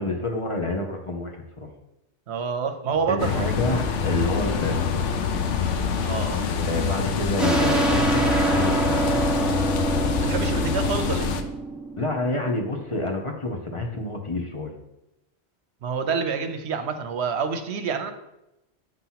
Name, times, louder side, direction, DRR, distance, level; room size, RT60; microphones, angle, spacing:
voice 1, 0.0-1.7 3.1-5.1 6.5-9.2 12.0-14.7, left 2 dB, 30° left, 2 dB, 0.7 m, -28 dB
voice 2, 2.3-3.5 6.0-6.5 10.2-11.3 15.8-18.1, right 5 dB, 70° right, 7 dB, 0.9 m, -27 dB
sound 1, 3.2-11.4, left 6 dB, 90° left, 1.0 m, -26 dB
sound 2, 7.4-12.7, right 1 dB, ahead, 0.5 m, -25 dB
7.7 x 2.9 x 5.6 m, 0.90 s
omnidirectional pair, 1.2 m